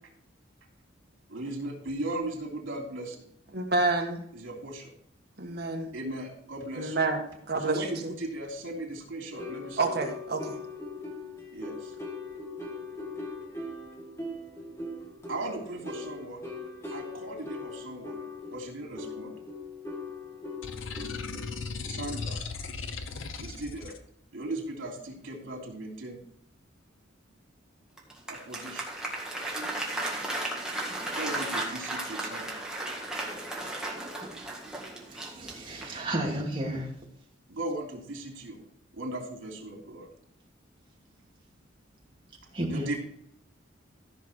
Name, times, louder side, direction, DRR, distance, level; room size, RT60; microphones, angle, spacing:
voice 1, 1.3-3.3 4.3-4.9 5.9-7.0 7.6-9.8 11.5-11.9 15.3-16.4 16.9-18.2 18.5-19.4 20.9-21.0 21.8-22.4 23.3-23.9 24.3-26.2 28.3-28.9 31.1-32.6 37.5-38.6 38.9-40.1 42.7-43.0, right 1 dB, 80° right, 3.0 m, -37 dB
voice 2, 3.5-4.2 5.4-5.9 6.8-7.2 7.5-8.1 9.8-10.6, right 3 dB, 55° right, 1.7 m, -28 dB
sound 1, 9.3-22.3, left 3 dB, 15° left, 2.0 m, -40 dB
sound 2, 20.6-24.0, left 4 dB, 85° left, 0.9 m, -37 dB
Applause, 28.0-36.1, right 1 dB, 5° right, 1.9 m, -35 dB
voice 3, 35.1-36.9 42.5-42.9, right 1 dB, 25° right, 2.4 m, -32 dB
14.0 x 6.2 x 4.6 m
head